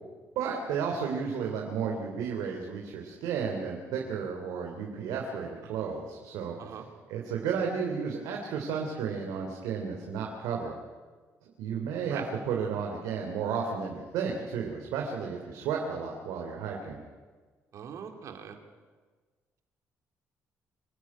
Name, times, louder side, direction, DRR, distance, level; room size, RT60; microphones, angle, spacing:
voice 1, 0.3-6.6 7.1-10.7 11.6-17.0, right 6 dB, 90° right, 0 dB, 3.2 m, -33 dB
voice 2, 17.7-18.6, right 8 dB, 65° right, 4 dB, 3.1 m, -42 dB
26.0 x 13.0 x 9.8 m, 1.4 s
cardioid pair, 80°, 6 cm